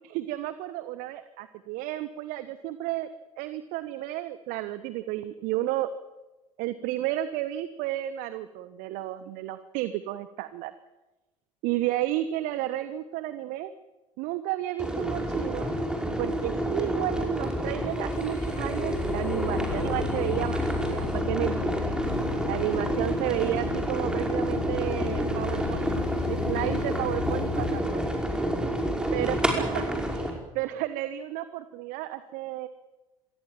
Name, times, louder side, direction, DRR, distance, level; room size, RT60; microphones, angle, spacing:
voice 1, 0.0-3.1 3.4-5.9 6.6-10.7 11.6-13.7 14.2-15.7 16.2-21.7 22.4-28.0 29.1-32.7, right 14 dB, 50° right, 13 dB, 1.2 m, -32 dB
sound 1, 14.8-30.3, right 1 dB, 5° right, 5.5 m, -29 dB
sound 2, 17.9-27.8, left 15 dB, 50° left, 2.0 m, -37 dB
26.0 x 19.5 x 7.6 m, 1.1 s
figure-of-eight pair, 70°, 18 cm